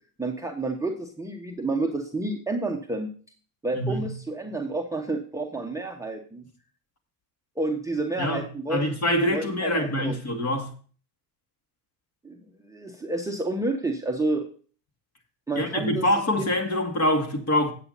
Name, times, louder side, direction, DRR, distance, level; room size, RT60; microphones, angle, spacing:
voice 1, 0.2-3.1 3.6-6.4 7.6-8.9 9.3-10.2 12.2-12.4 12.7-14.5 15.5-16.1, right 2 dB, 5° right, 1.0 m, -29 dB
voice 2, 3.7-4.1 8.2-8.4 8.7-10.7 15.6-17.7, left 1 dB, 30° left, 2.4 m, -25 dB
8.6 x 8.5 x 4.1 m
supercardioid pair, 90°, 49 cm